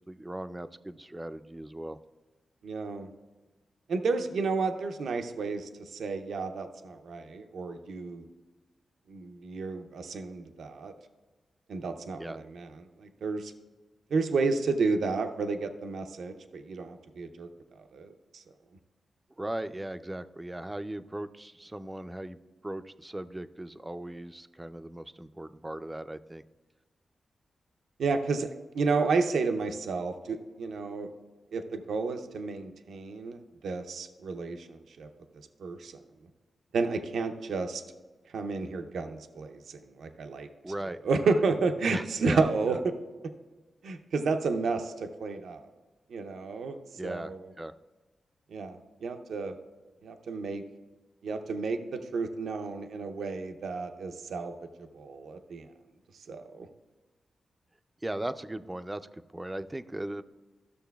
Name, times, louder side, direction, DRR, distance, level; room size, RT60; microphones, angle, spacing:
voice 1, 0.1-2.0 12.2-12.4 19.4-26.4 40.6-41.4 41.9-42.8 46.9-47.7 58.0-60.2, right 1 dB, 15° right, 12 dB, 0.3 m, -38 dB
voice 2, 2.6-3.1 3.9-8.2 9.1-10.9 11.7-13.5 14.1-17.5 17.9-18.4 28.0-31.1 31.5-35.1 35.6-36.0 36.7-37.8 38.3-40.5 41.0-43.0 43.8-45.7 46.1-47.4 48.5-49.5 50.0-50.6 51.2-54.5 54.9-55.7 56.3-56.7, right 4 dB, 85° right, 7 dB, 0.5 m, -31 dB
13.5 x 6.4 x 2.3 m, 1.2 s
cardioid pair, 85°, 0 cm